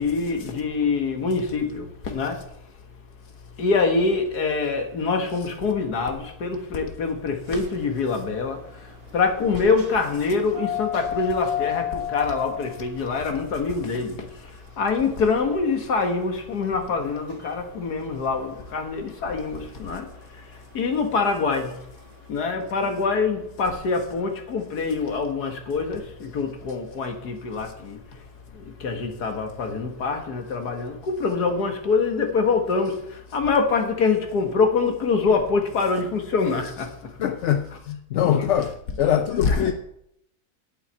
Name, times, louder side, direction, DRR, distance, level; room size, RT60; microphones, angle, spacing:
voice 1, 0.0-2.5 3.6-21.9 22.3-28.2 28.5-37.3 37.7-37.8 38.2-39.7, left 4 dB, 90° left, 2.1 m, -25 dB
sound 1, 7.4-22.2, left 10 dB, 70° right, 2.6 m, -35 dB
voice 2, 37.2-38.7 39.0-39.7, left 10 dB, 60° left, 0.8 m, -23 dB
8.7 x 8.3 x 7.7 m
omnidirectional pair, 1.6 m